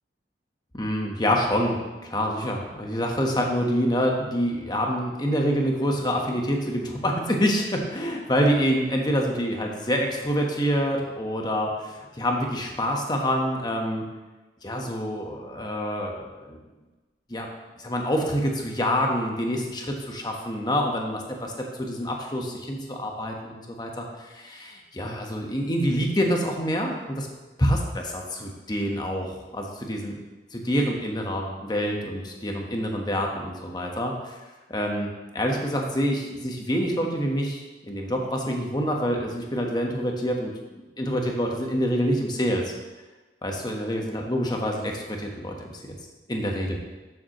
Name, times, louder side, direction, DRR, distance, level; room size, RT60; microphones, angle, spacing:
voice 1, 0.7-14.0 14.6-16.6 17.3-17.5 17.8-21.5 21.8-27.3 27.6-30.2 30.5-34.4 34.7-40.5 41.0-42.7 43.4-45.7 46.3-46.8, equal, 25° left, 1 dB, 1.2 m, -26 dB
13.0 x 7.1 x 3.1 m, 1.2 s
head